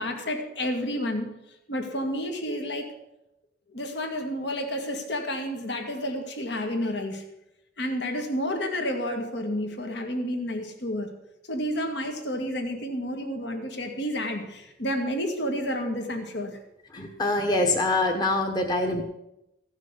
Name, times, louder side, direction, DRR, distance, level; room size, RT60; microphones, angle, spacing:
voice 1, 0.0-1.3 1.7-2.9 3.7-7.2 7.8-11.1 11.5-16.6, equal, 70° left, 4 dB, 1.9 m, -30 dB
voice 2, 16.9-19.0, left 2 dB, 20° left, 2 dB, 1.2 m, -24 dB
15.5 x 6.3 x 8.1 m, 0.88 s
head